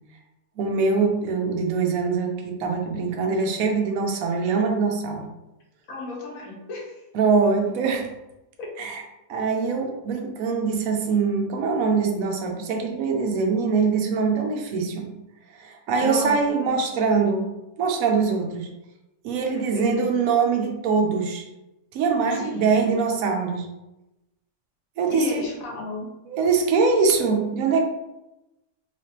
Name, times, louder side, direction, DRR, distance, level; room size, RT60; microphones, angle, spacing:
voice 1, 0.6-5.3 7.1-8.1 8.8-9.0 9.3-15.1 15.5-17.5 17.8-18.7 19.2-21.5 21.9-23.7 25.0-25.4 26.3-27.8, right 5 dB, 75° right, 2 dB, 1.1 m, -23 dB
voice 2, 5.9-7.1 8.6-8.7 16.0-16.8 19.5-20.1 22.3-23.0 25.1-26.0, left 3 dB, 75° left, -2 dB, 1.4 m, -34 dB
3.3 x 3.2 x 2.8 m, 0.95 s
omnidirectional pair, 1.5 m